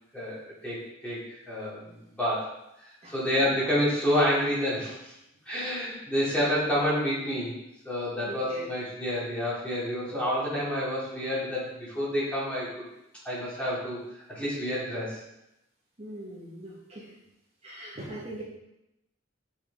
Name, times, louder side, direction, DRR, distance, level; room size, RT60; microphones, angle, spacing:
voice 1, 0.1-2.5 2.8-5.1 5.4-7.5 7.8-12.7 13.2-15.2, equal, 5° left, -9 dB, 3.0 m, -29 dB
voice 2, 8.2-8.7 16.0-17.1 17.6-18.4, right 1 dB, 30° right, -6 dB, 1.6 m, -40 dB
7.1 x 6.4 x 3.7 m, 0.86 s
head